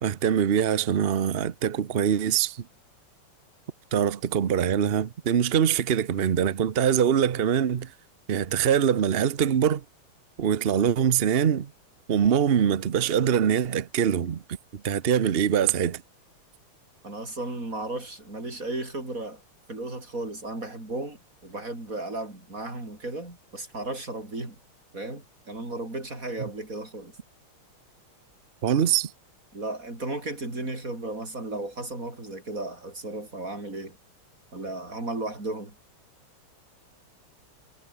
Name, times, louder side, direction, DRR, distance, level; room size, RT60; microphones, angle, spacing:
voice 1, 0.0-2.6 3.9-7.9 8.3-9.8 10.4-11.7 12.1-14.4 14.7-16.0 28.6-29.1, right 8 dB, 80° right, 0.5 m, -23 dB
voice 2, 17.0-19.4 19.7-24.6 24.9-27.2 29.5-34.0 34.5-35.7, right 2 dB, 35° right, 6.7 m, -35 dB
omnidirectional pair, 2.4 m